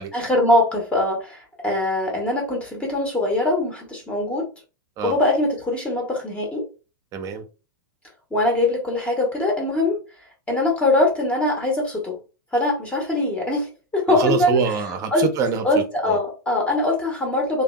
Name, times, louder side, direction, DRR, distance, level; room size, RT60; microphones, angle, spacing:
voice 1, 0.1-4.5 5.0-6.7 8.3-10.0 10.5-12.2 12.5-14.6 15.1-15.3 15.6-17.6, left 2 dB, 10° left, 0.8 m, -22 dB
voice 2, 7.1-7.4 14.1-15.6 16.1-16.2, right 6 dB, 30° right, 0.6 m, -24 dB
2.5 x 2.2 x 2.2 m
figure-of-eight pair, 100°, 11 cm